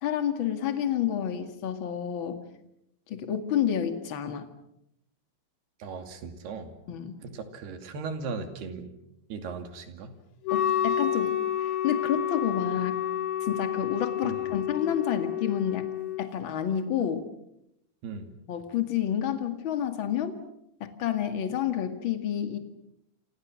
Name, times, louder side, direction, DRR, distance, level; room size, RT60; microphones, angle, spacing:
voice 1, 0.0-2.4 3.1-4.5 6.9-7.1 10.5-13.0 13.4-15.9 16.2-17.2 18.5-20.4 20.8-22.6, left 9 dB, 40° left, 7 dB, 2.3 m, -29 dB
voice 2, 5.8-6.7 7.3-8.9 9.3-10.1 14.2-14.5 18.0-18.3, right 4 dB, 90° right, 7 dB, 4.5 m, -37 dB
Wind instrument woodwind instrument, 10.5-16.3, left 10 dB, 60° left, 2.4 m, -29 dB
28.0 x 27.5 x 6.4 m, 0.80 s
omnidirectional pair, 4.5 m